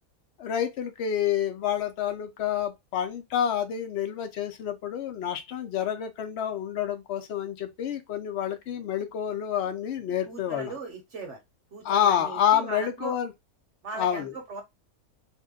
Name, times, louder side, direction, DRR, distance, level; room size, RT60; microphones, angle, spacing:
voice 1, 0.4-10.7 11.8-13.3 13.9-14.3, left 9 dB, 60° left, 0.8 m, -28 dB
voice 2, 10.3-11.4 11.7-13.2 13.8-14.6, right 3 dB, 60° right, 1.0 m, -39 dB
2.7 x 2.1 x 3.5 m
omnidirectional pair, 1.5 m